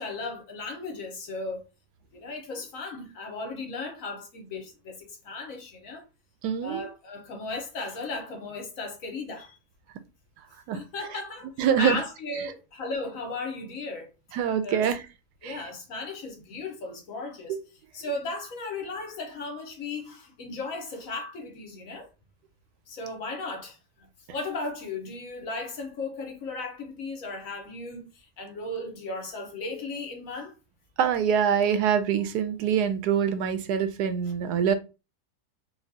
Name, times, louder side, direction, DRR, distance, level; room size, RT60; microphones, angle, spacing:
voice 1, 0.0-1.6 2.1-6.0 6.6-9.6 10.7-14.1 14.6-14.9 15.4-17.6 17.9-22.1 22.9-23.8 24.3-30.5, left 3 dB, 60° left, 1.2 m, -36 dB
voice 2, 6.4-6.9 10.7-10.8 11.6-12.0 14.3-15.0 15.4-15.6 17.5-17.6 31.0-34.7, right 8 dB, 85° right, 1.1 m, -25 dB
4.3 x 2.3 x 2.7 m
omnidirectional pair, 1.7 m